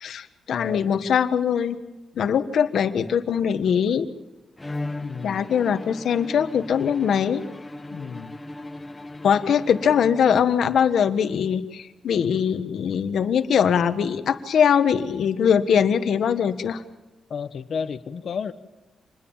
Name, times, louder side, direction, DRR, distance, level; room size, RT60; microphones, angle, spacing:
voice 1, 0.0-1.8 2.2-4.1 5.2-7.4 9.2-16.8, left 7 dB, 75° left, 9 dB, 1.6 m, -22 dB
voice 2, 0.5-1.0 5.0-5.4 7.9-8.4 17.3-18.5, left 6 dB, 60° left, 9 dB, 1.3 m, -32 dB
Bowed string instrument, 4.6-10.6, left 2 dB, 15° left, 1.3 m, -38 dB
27.0 x 21.0 x 7.4 m, 1.1 s
cardioid pair, 110°, 0 cm